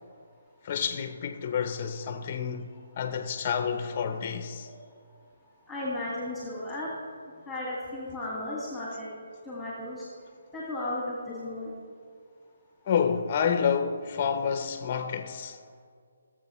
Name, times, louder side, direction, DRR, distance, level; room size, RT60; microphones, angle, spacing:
voice 1, 0.6-4.7 12.8-15.6, left 7 dB, 35° left, 0.7 m, -29 dB
voice 2, 5.7-6.9 7.5-9.1 9.5-10.0 10.5-11.7, left 1 dB, ahead, 1.8 m, -34 dB
17.5 x 7.4 x 3.1 m
hypercardioid pair, 160°, 0 cm